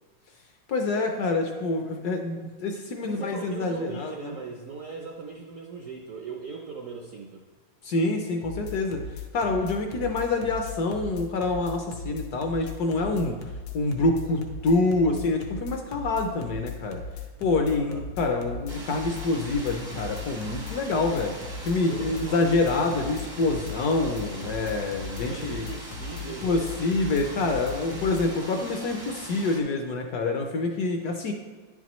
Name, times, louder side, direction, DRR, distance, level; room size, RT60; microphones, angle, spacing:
voice 1, 0.7-4.3 7.8-13.4 13.7-17.0 17.4-21.4 21.6-25.7 26.2-31.3, left 3 dB, 70° left, 4 dB, 1.0 m, -26 dB
voice 2, 3.0-7.4 17.7-18.0 21.9-22.5 25.1-26.7, right 4 dB, 70° right, 1 dB, 0.7 m, -39 dB
sound 1, 8.4-28.2, left 4 dB, 85° left, 1.6 m, -38 dB
sound 2, 18.7-29.6, right 1 dB, 30° right, 0.5 m, -42 dB
10.0 x 6.1 x 3.0 m, 1.3 s
omnidirectional pair, 2.1 m